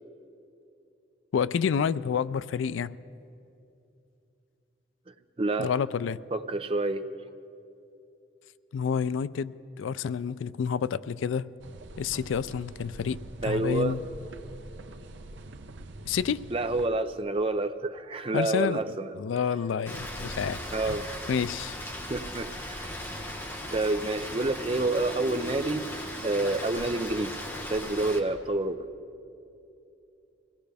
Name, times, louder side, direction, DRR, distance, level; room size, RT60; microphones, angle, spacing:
voice 1, 1.3-2.9 5.6-6.2 8.7-11.5 12.0-13.2 13.4-14.0 16.1-16.4 18.3-18.8 19.1-20.6 20.9-21.0 21.3-21.8, left 7 dB, 85° left, 17 dB, 0.4 m, -29 dB
voice 2, 5.4-5.7 6.3-7.1 13.4-14.0 16.5-19.1 20.7-21.1 22.1-22.9 23.7-25.9 26.2-27.4 27.7-28.8, right 2 dB, 30° right, 9 dB, 0.5 m, -28 dB
sound 1, 11.6-16.9, right 2 dB, 70° right, 0.7 m, -45 dB
Rain, 19.9-28.2, equal, 10° left, 1.2 m, -37 dB
23.5 x 17.0 x 3.4 m, 2.7 s
head